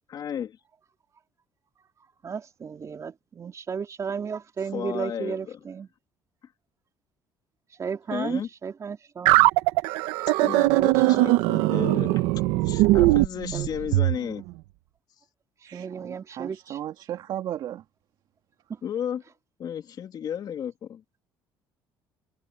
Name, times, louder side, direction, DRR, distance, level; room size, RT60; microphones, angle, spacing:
voice 1, 0.1-0.6 4.7-5.6 8.1-8.5 10.4-12.2 12.6-14.4 18.8-19.2 19.6-21.0, left 9 dB, 50° left, 3.1 m, -33 dB
voice 2, 2.2-5.9 7.8-9.3 10.7-11.7 13.5-13.7 15.7-16.8 18.7-18.8, right 6 dB, 35° right, 3.1 m, -34 dB
sound 1, 9.3-14.2, right 19 dB, 90° right, 1.3 m, -20 dB
voice 3, 15.6-17.8, right 11 dB, 60° right, 2.0 m, -35 dB
supercardioid pair, 90°, 9 cm